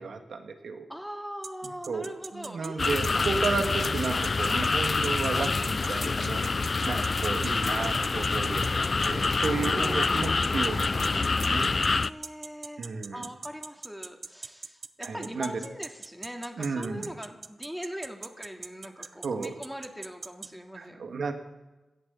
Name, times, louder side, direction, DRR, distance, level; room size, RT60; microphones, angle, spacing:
voice 1, 0.0-0.9 1.9-11.7 12.8-13.3 15.0-15.5 16.6-17.1 19.0-19.5 20.7-21.3, right 4 dB, 75° right, 6 dB, 1.8 m, -33 dB
voice 2, 0.9-3.5 6.6-6.7 9.6-10.3 11.9-12.8 13.1-21.0, equal, ahead, 3 dB, 2.5 m, -41 dB
sound 1, 1.4-20.5, right 4 dB, 60° right, 0.7 m, -39 dB
sound 2, 2.8-12.1, left 4 dB, 45° left, 0.4 m, -26 dB
17.0 x 11.5 x 7.0 m, 1.1 s
cardioid pair, 70°, 0 cm